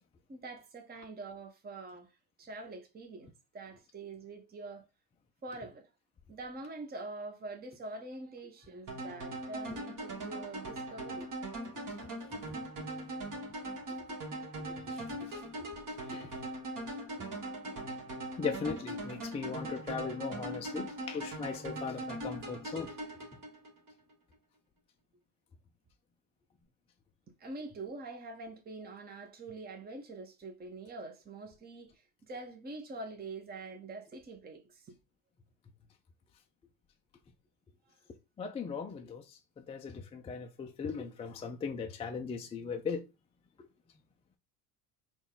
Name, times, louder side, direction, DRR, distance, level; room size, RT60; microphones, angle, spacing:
voice 1, 0.3-3.3 3.5-4.9 5.4-5.9 6.3-11.3 27.4-34.9, right 2 dB, 20° right, 0.9 m, -45 dB
sound 1, 8.9-23.9, right 1 dB, 40° right, 1.6 m, -40 dB
voice 2, 14.9-15.4 16.0-16.4 18.4-22.9 38.4-43.0, left 5 dB, 15° left, 0.3 m, -38 dB
3.8 x 2.4 x 3.7 m
hypercardioid pair, 75°, 48 cm